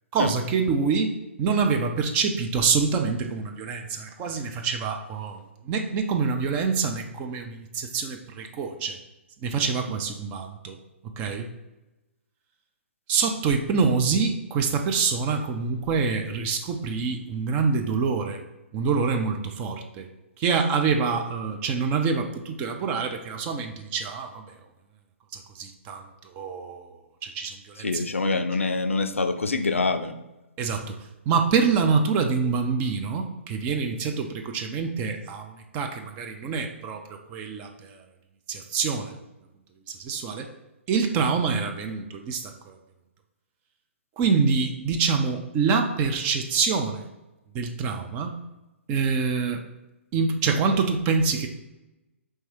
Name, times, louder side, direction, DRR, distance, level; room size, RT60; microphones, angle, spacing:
voice 1, 0.1-9.0 9.4-10.8 11.0-11.5 13.1-18.4 18.7-20.1 20.4-24.5 25.3-28.0 30.6-31.0 31.3-38.0 38.5-39.2 39.9-40.5 40.9-42.8 44.2-47.1 47.5-48.4 48.9-49.6 50.1-51.5, right 5 dB, 20° right, 4 dB, 0.4 m, -26 dB
voice 2, 27.8-30.1, left 3 dB, 75° left, 9 dB, 0.4 m, -25 dB
4.5 x 3.3 x 3.1 m, 1.0 s
figure-of-eight pair, 125°, 7 cm